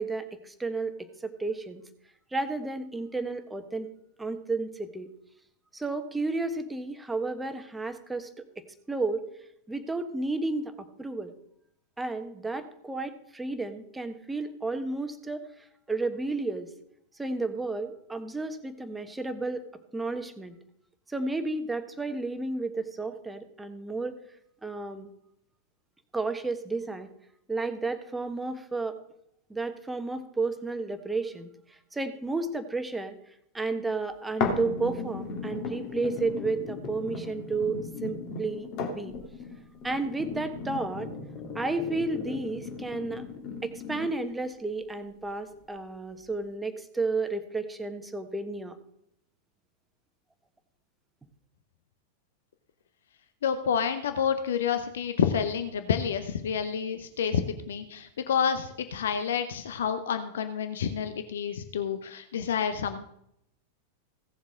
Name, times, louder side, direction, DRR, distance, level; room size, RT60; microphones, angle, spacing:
voice 1, 0.0-1.8 2.3-3.9 4.2-5.1 5.7-8.3 8.6-9.2 9.7-11.3 12.0-15.4 15.9-16.7 17.2-19.7 19.9-20.5 21.1-24.2 24.6-25.1 26.1-27.1 27.5-29.0 29.5-33.2 33.5-39.1 39.8-41.1 41.5-43.3 43.6-48.8, right 3 dB, 10° right, 9 dB, 1.1 m, -32 dB
sound 1, 34.4-44.4 45.0-45.1, left 4 dB, 40° left, 2.1 m, -36 dB
voice 2, 53.4-57.4 57.7-63.1, left 7 dB, 60° left, 9 dB, 0.7 m, -29 dB
16.5 x 7.3 x 3.6 m, 0.75 s
figure-of-eight pair, 90°, 0 cm